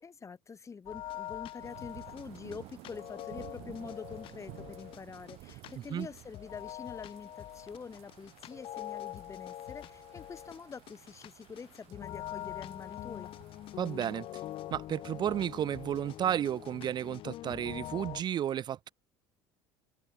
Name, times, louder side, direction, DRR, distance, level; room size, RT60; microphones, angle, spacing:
voice 1, 0.0-13.3, left 5 dB, 25° left, 1.4 m, -46 dB
sound 1, 0.9-18.2, left 14 dB, 55° left, 0.8 m, -44 dB
sound 2, 1.6-17.1, right 20 dB, 65° right, 3.7 m, -54 dB
voice 2, 13.8-14.3 14.7-18.9, right 10 dB, 40° right, 0.5 m, -32 dB
hypercardioid pair, 80°, 11 cm